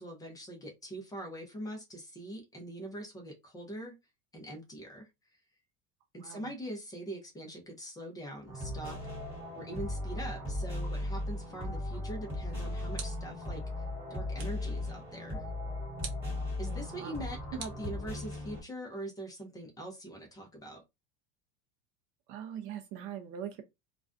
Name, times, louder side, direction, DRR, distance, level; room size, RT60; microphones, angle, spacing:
voice 1, 0.0-4.0 4.3-5.1 6.1-9.0 9.6-15.5 16.6-20.8, right 1 dB, 10° left, 0.5 m, -43 dB
voice 2, 6.2-6.5 16.6-17.2 17.5-17.6 22.3-23.6, right 9 dB, 40° right, 0.4 m, -42 dB
sound 1, 8.5-18.6, left 1 dB, 5° right, 1.2 m, -37 dB
sound 2, 12.3-13.5 14.4-14.7 16.0-16.4 17.6-18.5, right 6 dB, 85° right, 1.0 m, -46 dB
2.3 x 2.2 x 2.4 m
supercardioid pair, 160°, 32 cm